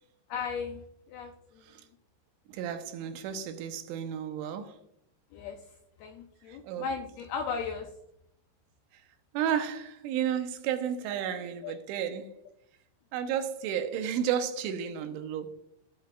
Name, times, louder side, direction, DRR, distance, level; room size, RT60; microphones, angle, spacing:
voice 1, 0.3-1.6 5.3-5.6 6.0-7.9 11.6-11.8, left 6 dB, 85° left, 2.2 m, -36 dB
voice 2, 2.5-4.7 6.6-6.9 9.3-12.3 13.1-15.5, right 9 dB, 90° right, 3.4 m, -32 dB
16.5 x 8.1 x 2.4 m
omnidirectional pair, 5.3 m